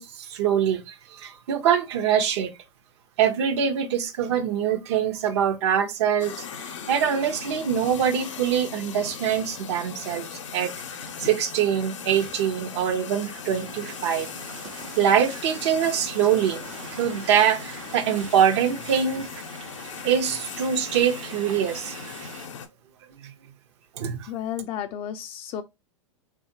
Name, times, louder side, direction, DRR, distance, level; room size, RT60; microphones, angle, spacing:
voice 1, 0.0-2.5 3.2-10.7 11.2-14.3 15.0-16.6 16.9-19.3 20.0-22.1 23.2-23.3 24.0-24.3, right 8 dB, 60° right, 0.7 m, -24 dB
sound 1, 6.2-22.7, left 7 dB, 75° left, 0.6 m, -39 dB
sound 2, 13.5-22.5, right 5 dB, 85° right, 0.9 m, -43 dB
voice 2, 24.3-25.6, left 10 dB, 35° left, 0.4 m, -32 dB
3.6 x 2.4 x 2.7 m
hypercardioid pair, 105°, 16 cm